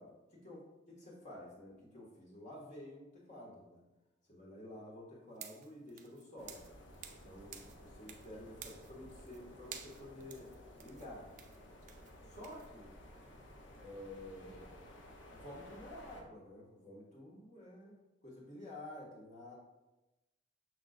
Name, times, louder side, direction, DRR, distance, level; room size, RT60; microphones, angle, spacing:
voice 1, 0.0-3.8 4.3-6.6 7.2-10.5 10.8-11.3 12.3-12.9 13.8-14.9 15.3-18.0 18.2-19.5, left 1 dB, 40° left, -4 dB, 1.8 m, -51 dB
sound 1, 5.3-7.3 7.5-8.3 8.6-9.4 9.7-12.7, right 8 dB, 45° right, 0.5 m, -52 dB
sound 2, 6.4-16.2, left 1 dB, 80° left, 0.9 m, -55 dB
6.4 x 6.0 x 2.5 m, 1.0 s
head